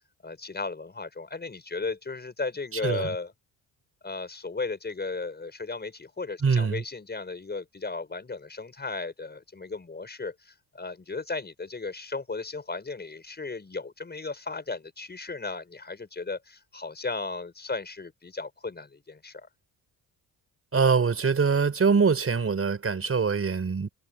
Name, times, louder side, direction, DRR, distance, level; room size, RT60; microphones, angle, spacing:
voice 1, 0.2-3.3 4.0-19.5, left 3 dB, 25° left, 5.5 m, -35 dB
voice 2, 2.7-3.2 6.4-6.8 20.7-23.9, right 5 dB, 35° right, 5.2 m, -24 dB
cardioid pair, 80°, 38 cm